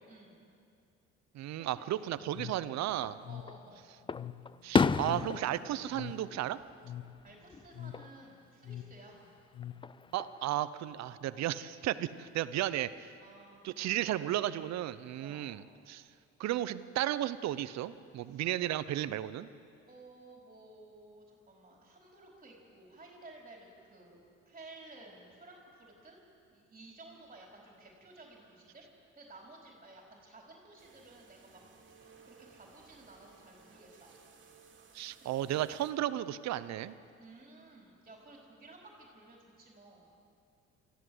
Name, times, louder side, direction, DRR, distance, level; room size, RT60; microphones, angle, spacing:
voice 1, 0.0-0.5 1.5-1.9 3.2-3.9 7.2-9.2 13.2-13.6 15.2-15.5 18.2-18.4 19.9-26.2 26.5-28.8 29.1-31.6 32.0-34.1 35.2-35.3 37.2-40.1, right 2 dB, 25° right, -1 dB, 4.5 m, -55 dB
voice 2, 1.3-3.1 4.6-6.6 10.1-13.1 13.6-16.0 16.4-19.5 34.9-36.9, right 13 dB, 65° right, 14 dB, 0.9 m, -34 dB
sound 1, 2.3-10.2, left 11 dB, 65° left, 1.0 m, -46 dB
Fireworks, 2.9-3.6 4.1-7.2 7.5-8.1 9.6-10.4, left 5 dB, 15° left, 0.4 m, -33 dB
sound 2, 30.8-35.9, right 5 dB, 40° right, 2.9 m, -60 dB
24.0 x 15.0 x 8.0 m, 2.4 s
cardioid pair, 95°, 29 cm